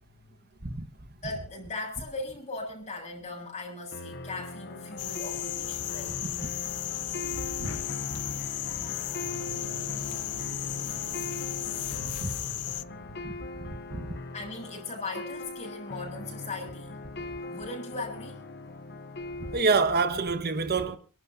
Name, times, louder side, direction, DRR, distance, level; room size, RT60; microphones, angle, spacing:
voice 1, 0.9-6.2 14.3-17.0 17.5-18.4, left 3 dB, 35° left, 7.2 m, -39 dB
sound 1, 3.9-19.9, left 2 dB, 50° left, 0.9 m, -40 dB
sound 2, 5.0-12.8, left 13 dB, 80° left, 0.7 m, -34 dB
sound 3, 9.2-14.6, right 4 dB, 80° right, 5.3 m, -48 dB
voice 2, 13.2-14.1 19.5-21.0, right 4 dB, 45° right, 1.5 m, -27 dB
29.5 x 12.0 x 2.8 m
head